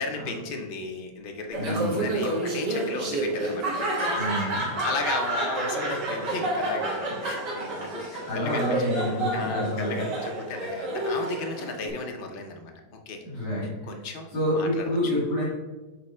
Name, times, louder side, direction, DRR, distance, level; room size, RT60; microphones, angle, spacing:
voice 1, 0.0-4.2 4.6-9.0 9.3-12.7 13.1-13.2 13.8-14.3 14.5-15.1, left 3 dB, 50° left, 3 dB, 0.6 m, -35 dB
voice 2, 1.5-2.1 4.1-4.7 8.2-10.0 13.2-13.9 14.3-15.4, equal, 75° left, -9 dB, 2.8 m, -28 dB
Laughter, 1.5-11.9, right 1 dB, 80° right, 2.3 m, -29 dB
8.5 x 3.3 x 4.3 m, 1.2 s
omnidirectional pair, 1.8 m